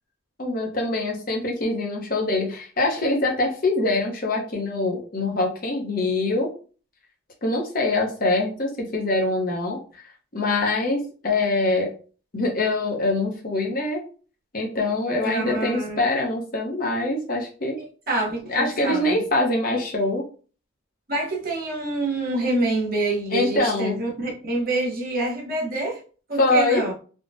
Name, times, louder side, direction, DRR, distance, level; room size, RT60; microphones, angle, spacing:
voice 1, 0.4-6.5 7.4-9.8 10.3-11.9 12.3-14.0 14.5-17.8 18.5-20.2 23.3-24.0 26.4-26.8, left 2 dB, 45° left, 0.8 m, -24 dB
voice 2, 15.2-16.0 17.8-19.3 21.1-26.0 26.3-26.9, right 2 dB, 45° right, 1.0 m, -26 dB
3.6 x 2.2 x 2.5 m
head